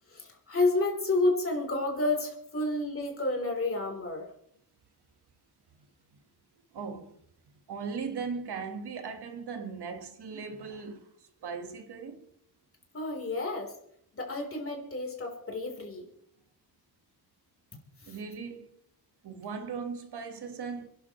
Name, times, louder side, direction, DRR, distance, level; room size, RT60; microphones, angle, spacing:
voice 1, 0.1-4.2 12.9-13.7 14.2-16.1 18.0-18.1, left 2 dB, 35° left, 3.9 m, -30 dB
voice 2, 6.7-7.2 7.7-11.1 11.4-12.3 18.1-18.7 19.2-20.9, right 5 dB, 75° right, 1.7 m, -38 dB
28.5 x 11.0 x 3.2 m
wide cardioid pair, 160°, 39 cm